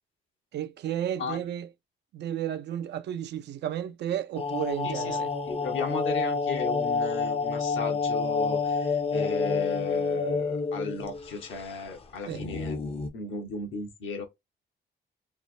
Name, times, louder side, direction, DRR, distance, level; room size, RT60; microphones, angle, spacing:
voice 1, 0.5-1.7 2.1-5.3 12.3-12.4, right 10 dB, 60° right, 0.4 m, -32 dB
sound 1, 4.4-11.3 11.6-11.7 12.3-13.1, left 4 dB, 30° left, 0.5 m, -28 dB
voice 2, 4.8-5.2 5.5-12.8 13.1-14.2, left 4 dB, 80° left, 1.1 m, -35 dB
3.2 x 2.1 x 2.5 m
cardioid pair, 90°, 20 cm